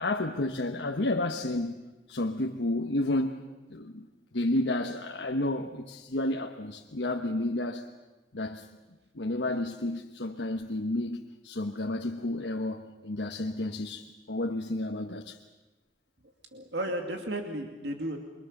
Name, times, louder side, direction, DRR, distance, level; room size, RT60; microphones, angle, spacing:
voice 1, 0.0-1.8 2.1-3.4 3.7-4.1 4.3-7.9 8.3-8.7 9.1-15.4, left 2 dB, 85° left, 1.3 m, -31 dB
voice 2, 16.5-18.2, right 1 dB, 75° right, 2.5 m, -33 dB
29.0 x 24.0 x 6.7 m
head